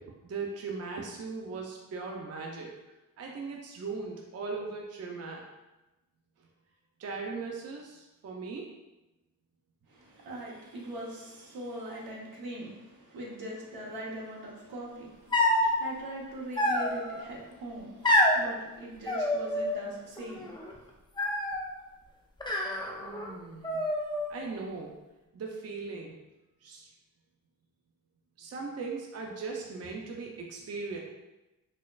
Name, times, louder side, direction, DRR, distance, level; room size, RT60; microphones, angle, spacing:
voice 1, 0.2-2.7 3.2-5.5 7.0-8.8 23.0-23.8 24.3-24.9 25.3-26.1 26.6-26.9 28.4-31.0, right 4 dB, 45° right, 0 dB, 0.5 m, -38 dB
voice 2, 9.9-20.9, right 1 dB, 85° right, -4 dB, 1.0 m, -42 dB
sound 1, 15.3-15.8 16.6-17.2 18.0-18.4 19.1-19.9 20.2-20.7 21.2-21.7 22.4-23.3 23.6-24.4, left 1 dB, 15° left, 0.5 m, -27 dB
4.1 x 2.4 x 2.3 m, 1.0 s
cardioid pair, 75°, 35 cm